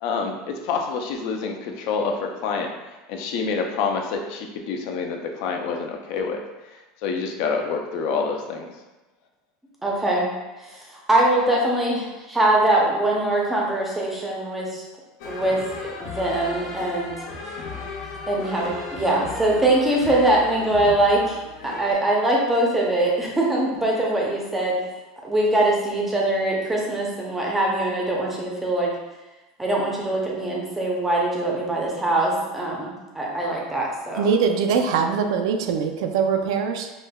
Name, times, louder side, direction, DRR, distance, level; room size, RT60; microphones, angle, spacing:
voice 1, 0.0-2.7 3.1-6.4 7.0-8.7, left 5 dB, 55° left, 3 dB, 0.4 m, -27 dB
voice 2, 9.8-10.3 10.7-10.8 11.1-14.8 15.3-15.6 16.0-17.2 18.0-21.4 21.6-24.8 25.2-28.9 29.6-34.3, right 1 dB, 5° right, -3 dB, 0.5 m, -22 dB
sound 1, 15.2-21.9, left 3 dB, 80° left, 0.9 m, -36 dB
voice 3, 34.2-36.9, right 6 dB, 85° right, 5 dB, 0.4 m, -22 dB
4.9 x 2.1 x 2.2 m, 1.1 s
supercardioid pair, 165°, 3 cm